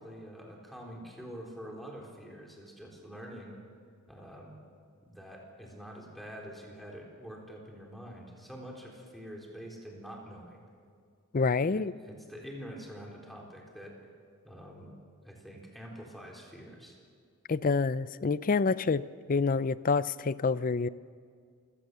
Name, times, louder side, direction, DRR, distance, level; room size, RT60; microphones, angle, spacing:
voice 1, 0.0-3.5 4.1-4.6 5.1-10.6 11.7-14.0 14.4-14.9 15.3-17.0, equal, ahead, -1 dB, 3.9 m, -46 dB
voice 2, 11.3-11.9 17.5-19.0 19.3-20.9, left 4 dB, 40° left, 17 dB, 0.5 m, -27 dB
28.0 x 17.5 x 6.8 m, 2.1 s
head